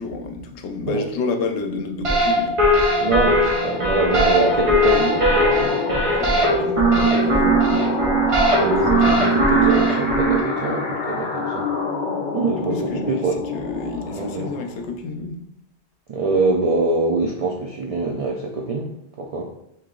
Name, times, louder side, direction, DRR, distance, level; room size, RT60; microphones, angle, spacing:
voice 1, 0.0-2.6 6.2-8.1 8.6-9.3 9.6-9.9 12.7-15.4, left 3 dB, 80° left, 4 dB, 0.9 m, -30 dB
sound 1, 2.0-10.4, right 1 dB, 35° right, 0.6 m, -19 dB
sound 2, 2.4-15.0, left 4 dB, 55° left, 0.6 m, -28 dB
voice 2, 3.0-6.2 6.5-6.7 8.6-11.7 12.3-13.4 14.1-14.5 16.1-18.9 19.2-19.5, right 3 dB, 70° right, -1 dB, 0.3 m, -24 dB
3.0 x 2.8 x 3.7 m, 0.78 s
omnidirectional pair, 1.2 m